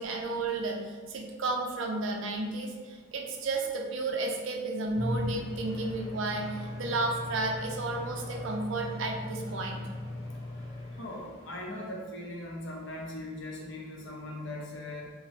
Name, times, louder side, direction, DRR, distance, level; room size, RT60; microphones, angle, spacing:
voice 1, 0.0-9.8, right 2 dB, 60° right, 2 dB, 0.4 m, -32 dB
sound 1, 4.9-12.0, left 1 dB, 20° left, 1.0 m, -38 dB
voice 2, 11.0-15.1, left 1 dB, 55° left, -2 dB, 0.6 m, -39 dB
2.7 x 2.0 x 3.2 m, 1.5 s
head